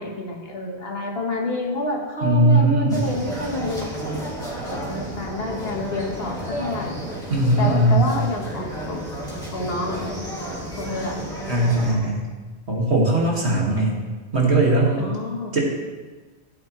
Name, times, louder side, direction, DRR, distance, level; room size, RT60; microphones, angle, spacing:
voice 1, 0.0-3.9 4.7-7.0 7.6-9.1 9.5-10.0 10.8-11.2 15.0-15.6, left 2 dB, 60° left, 1 dB, 1.6 m, -29 dB
voice 2, 2.2-3.0 7.3-8.1 11.5-12.3 12.7-14.0 14.3-15.0 15.5-15.6, right 2 dB, 75° right, -2 dB, 2.4 m, -19 dB
sound 1, 2.9-11.9, right 1 dB, 5° left, 2.4 m, -32 dB
15.5 x 8.2 x 3.2 m, 1.3 s
omnidirectional pair, 1.1 m